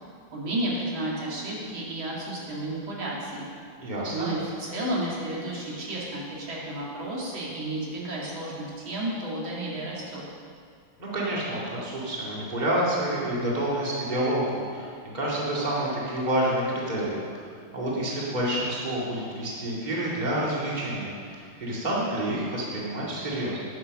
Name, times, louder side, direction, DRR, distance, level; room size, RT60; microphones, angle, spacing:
voice 1, 0.3-3.5 4.1-10.2, right 1 dB, 70° right, -5 dB, 3.0 m, -32 dB
voice 2, 3.8-4.3 11.0-14.9 15.1-17.2 17.7-23.6, right 1 dB, 20° right, -6 dB, 2.2 m, -28 dB
9.5 x 9.4 x 6.4 m, 2.2 s
omnidirectional pair, 2.3 m